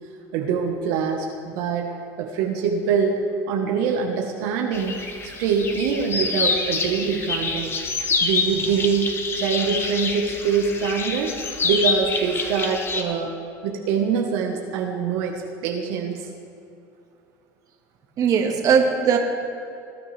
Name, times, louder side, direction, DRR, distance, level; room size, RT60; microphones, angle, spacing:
voice 1, 0.3-1.9 2.2-3.2 3.5-4.9 5.2-7.7 8.2-9.1 9.3-11.3 11.6-13.3 13.6-16.3, right 6 dB, 75° right, 1 dB, 1.3 m, -24 dB
sound 1, 4.7-13.0, left 4 dB, 30° left, 1.3 m, -26 dB
voice 2, 18.2-19.2, right 7 dB, 45° right, 2 dB, 1.7 m, -19 dB
20.5 x 9.8 x 3.4 m, 2.6 s
supercardioid pair, 120°, 8 cm